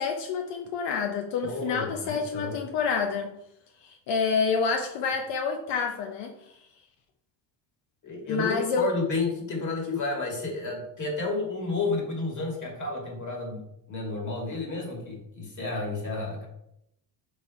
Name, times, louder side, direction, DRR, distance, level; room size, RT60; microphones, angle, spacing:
voice 1, 0.0-3.3 3.8-6.3 8.3-8.9, left 5 dB, 75° left, 3 dB, 0.8 m, -28 dB
voice 2, 1.4-2.5 8.0-13.6 13.9-16.5, left 3 dB, 40° left, -1 dB, 2.3 m, -31 dB
5.5 x 4.6 x 4.2 m, 0.80 s
cardioid pair, 110°, 43 cm